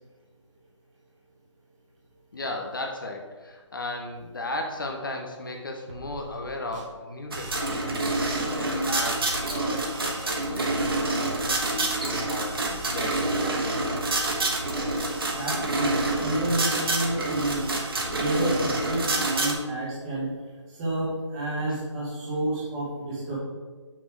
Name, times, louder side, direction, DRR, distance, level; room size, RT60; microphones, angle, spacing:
voice 1, 2.3-8.2 8.5-13.6 21.7-21.8, left 2 dB, 45° left, 3 dB, 0.9 m, -36 dB
sound 1, 5.9-6.9 7.3-13.6 14.0-19.2, left 1 dB, 75° right, 1.7 m, -45 dB
sound 2, 7.3-19.5, right 2 dB, 50° right, 1.3 m, -27 dB
voice 2, 15.3-17.7 18.1-20.3 20.7-23.4, right 1 dB, 10° right, -8 dB, 1.0 m, -29 dB
6.2 x 6.0 x 4.6 m, 1.4 s
hypercardioid pair, 175°, 16 cm